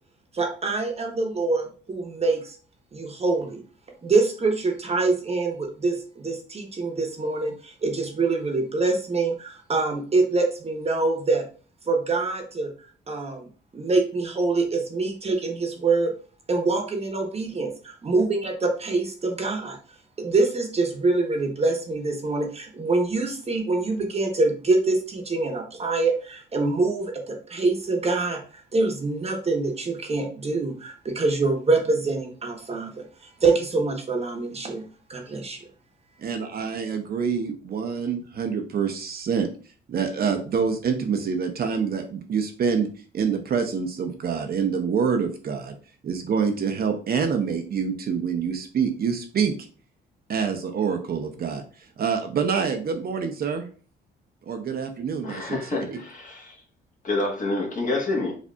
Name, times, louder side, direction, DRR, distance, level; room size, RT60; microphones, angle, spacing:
voice 1, 0.3-2.6 2.9-3.6 4.0-11.4 11.9-12.7 13.1-13.4 13.7-16.1 16.5-19.8 20.2-33.0 33.4-34.8 35.1-35.6, right 3 dB, 30° right, 2 dB, 1.0 m, -25 dB
voice 2, 36.2-39.5 39.9-42.9 43.1-45.7 46.0-49.5 50.3-51.6 52.0-53.7 54.5-56.0, right 6 dB, 50° right, 5 dB, 0.7 m, -26 dB
voice 3, 55.2-56.6 57.0-58.4, left 2 dB, 40° left, 1 dB, 1.2 m, -28 dB
5.0 x 2.6 x 2.3 m, 0.40 s
cardioid pair, 90°, 20 cm